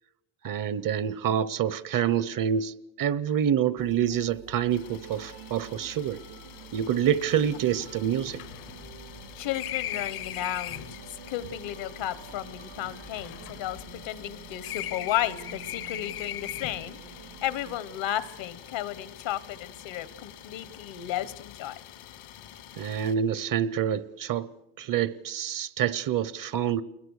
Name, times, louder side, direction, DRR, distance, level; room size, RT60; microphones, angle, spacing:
voice 1, 0.4-6.2 6.7-8.4 22.8-24.5 24.8-26.8, right 9 dB, 45° right, 0.8 m, -27 dB
sound 1, 3.8-17.8, right 9 dB, 75° right, 2.2 m, -48 dB
Idling, 4.7-23.2, left 10 dB, 85° left, 2.8 m, -48 dB
sound 2, 6.9-7.0 7.2-7.3 7.7-11.0 11.9-14.3 14.6-16.9, left 12 dB, 50° left, 0.8 m, -39 dB
voice 2, 9.3-11.0 11.3-21.7, left 12 dB, 70° left, 1.2 m, -33 dB
28.0 x 21.5 x 6.4 m
cardioid pair, 120°, 46 cm